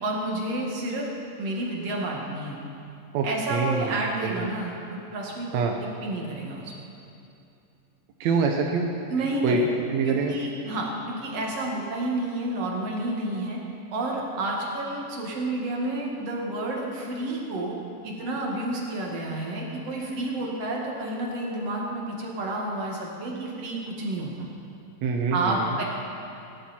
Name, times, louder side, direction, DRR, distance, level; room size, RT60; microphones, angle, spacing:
voice 1, 0.0-1.1 1.4-2.6 3.2-6.7 9.1-9.7 10.0-13.6 13.9-17.8 18.0-24.3 25.3-25.8, right 2 dB, 50° right, -2 dB, 2.8 m, -30 dB
voice 2, 3.1-4.5 5.5-5.8 8.2-8.9 9.4-9.6 9.9-10.4 25.0-25.8, right 5 dB, 70° right, 2 dB, 1.7 m, -25 dB
21.0 x 11.5 x 4.4 m, 2.6 s
omnidirectional pair, 4.1 m